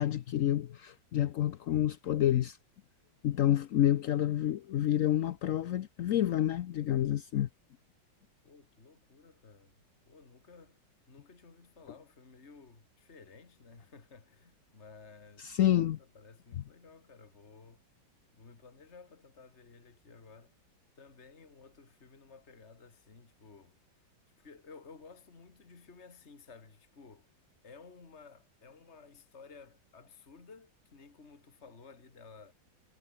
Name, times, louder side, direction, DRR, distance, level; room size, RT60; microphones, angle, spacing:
voice 1, 0.0-2.6 3.2-7.5 15.4-16.0 16.5-16.6, left 12 dB, 70° left, 0.8 m, -28 dB
voice 2, 8.4-10.8 11.1-17.8 18.3-20.5 21.0-23.8 24.4-27.3 27.6-32.5, left 4 dB, 35° left, 2.8 m, -55 dB
omnidirectional pair, 2.1 m